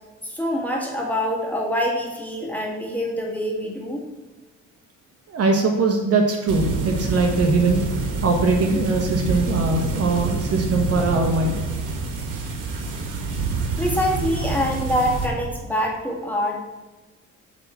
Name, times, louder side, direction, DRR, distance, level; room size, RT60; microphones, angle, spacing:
voice 1, 0.2-4.0 13.8-16.6, equal, 5° left, -1 dB, 1.9 m, -25 dB
voice 2, 5.3-7.8 8.2-11.6, right 3 dB, 55° right, 3 dB, 1.2 m, -21 dB
sound 1, 6.5-15.3, right 3 dB, 90° right, 1.4 m, -27 dB
7.8 x 3.6 x 5.8 m, 1.2 s
cardioid pair, 90°, 30 cm